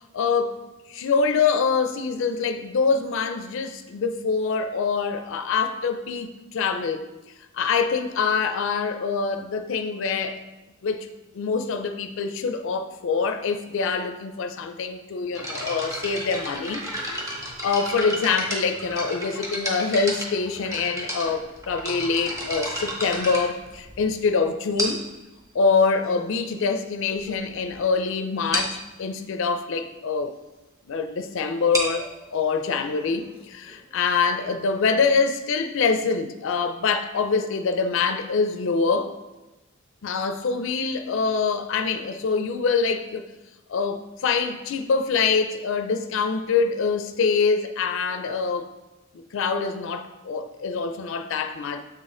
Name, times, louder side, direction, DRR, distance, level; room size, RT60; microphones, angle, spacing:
voice 1, 0.1-7.1 7.5-10.5 10.8-11.1 11.3-17.4 17.6-25.0 25.5-30.3 30.9-39.1 40.0-43.3 43.7-48.7 49.1-51.8, left 5 dB, 65° left, 0.4 m, -25 dB
sound 1, 15.3-24.2 24.8-25.2 26.0-26.1 26.7-26.8 27.1-27.3 27.6-27.7 28.0-28.1 28.5-28.8 31.5-35.0, equal, 15° right, 1.2 m, -32 dB
7.4 x 4.1 x 3.7 m
head